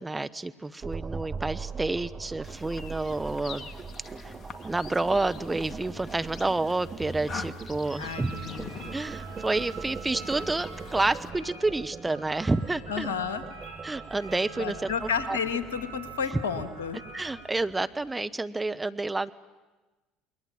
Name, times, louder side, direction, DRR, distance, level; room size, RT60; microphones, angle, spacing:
voice 1, 0.0-3.7 4.2-4.3 4.6-8.3 8.9-13.1 13.8-15.4 16.3-16.4 17.1-19.3, right 2 dB, 15° right, 12 dB, 1.0 m, -29 dB
sound 1, 0.8-18.1, right 5 dB, 30° right, 1.2 m, -41 dB
sound 2, 2.4-11.3, left 5 dB, 40° left, 2.1 m, -45 dB
sound 3, 6.8-17.5, right 5 dB, 70° right, 6.6 m, -45 dB
voice 2, 8.0-8.7 12.9-13.4 14.6-17.0, left 6 dB, 80° left, 11 dB, 1.8 m, -31 dB
28.5 x 22.0 x 8.8 m, 1.2 s
hypercardioid pair, 65°, 0 cm